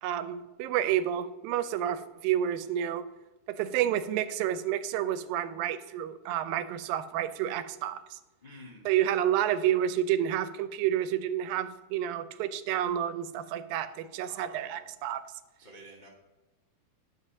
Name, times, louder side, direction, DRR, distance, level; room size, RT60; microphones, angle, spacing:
voice 1, 0.0-3.0 3.5-8.2 8.9-15.2, right 11 dB, 90° right, 12 dB, 2.4 m, -30 dB
voice 2, 8.4-8.9 14.3-14.9 15.6-16.1, equal, 60° left, -3 dB, 0.4 m, -50 dB
11.0 x 5.4 x 6.5 m, 1.1 s
omnidirectional pair, 4.0 m